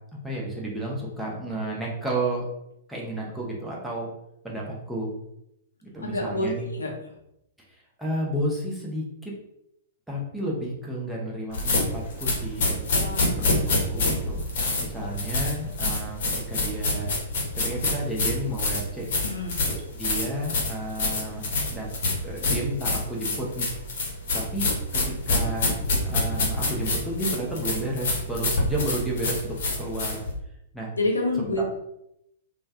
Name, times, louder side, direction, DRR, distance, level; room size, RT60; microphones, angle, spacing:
voice 1, 0.2-2.4 2.9-4.1 4.4-5.1 5.8-6.7 8.0-9.3 10.1-13.0 13.4-14.4 14.8-16.2 16.5-17.2 17.6-19.1 19.7-21.9 22.2-23.7 24.3-30.2 30.7-30.9 31.6-31.7, right 1 dB, ahead, -5 dB, 0.8 m, -32 dB
voice 2, 6.0-6.9 12.9-13.4 19.2-19.6 30.9-31.6, left 2 dB, 75° left, 0 dB, 0.7 m, -28 dB
sound 1, 11.5-30.3, left 2 dB, 50° left, 1.0 m, -26 dB
3.2 x 2.3 x 2.7 m, 0.80 s
figure-of-eight pair, 105°, 0 cm